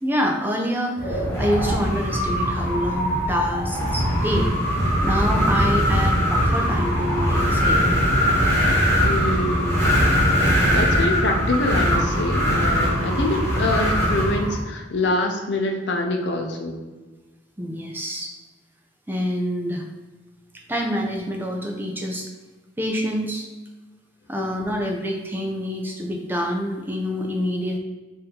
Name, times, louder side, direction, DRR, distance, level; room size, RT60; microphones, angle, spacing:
voice 1, 0.0-8.0 17.6-18.3 19.1-19.9 20.5-22.3 22.8-23.5 24.3-27.8, equal, 10° right, 1 dB, 0.4 m, -27 dB
Wind, 1.0-14.6, equal, 15° left, 1.3 m, -21 dB
voice 2, 9.0-9.9 10.7-16.8 24.4-24.6, left 2 dB, 65° left, 2 dB, 0.6 m, -25 dB
4.2 x 2.7 x 3.8 m, 1.2 s
head